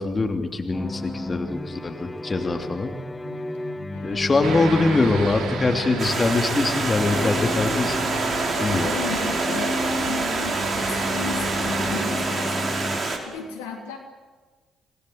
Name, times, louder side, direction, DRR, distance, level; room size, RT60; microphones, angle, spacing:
voice 1, 0.0-3.0 4.0-8.0 8.6-8.9, left 3 dB, 30° left, 4 dB, 3.0 m, -23 dB
sound 1, 0.7-13.0, left 2 dB, 15° left, 1.7 m, -32 dB
voice 2, 3.2-4.2 8.5-14.0, left 6 dB, 80° left, 1 dB, 3.7 m, -36 dB
sound 2, 4.4-12.0, right 5 dB, 65° right, 4.8 m, -32 dB
Stream, 6.0-13.2, right 3 dB, 40° right, 5.4 m, -27 dB
27.5 x 20.5 x 8.1 m, 1.3 s
hypercardioid pair, 45°, 0 cm